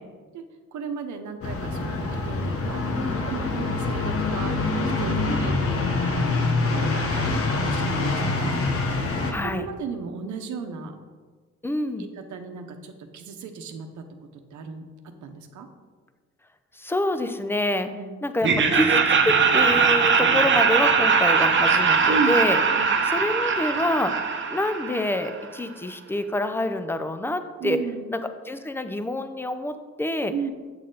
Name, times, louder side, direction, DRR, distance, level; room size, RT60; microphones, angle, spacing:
voice 1, 0.7-6.3 6.7-9.0 9.4-10.9 12.0-14.1 14.5-15.7 17.9-18.2 22.1-22.3 22.7-22.9 27.6-28.1 30.3-30.5, right 5 dB, 75° right, 6 dB, 0.9 m, -35 dB
sound 1, 1.4-9.3, left 3 dB, 50° left, 1.2 m, -25 dB
voice 2, 5.2-5.6 9.3-9.7 11.6-12.1 16.7-17.9 18.2-22.6 23.0-27.8 28.1-30.3, left 1 dB, 10° left, 9 dB, 0.5 m, -27 dB
Laughter, 18.4-25.4, right 5 dB, 40° right, 0.9 m, -21 dB
7.9 x 6.4 x 3.9 m, 1.5 s
cardioid pair, 90°, 30 cm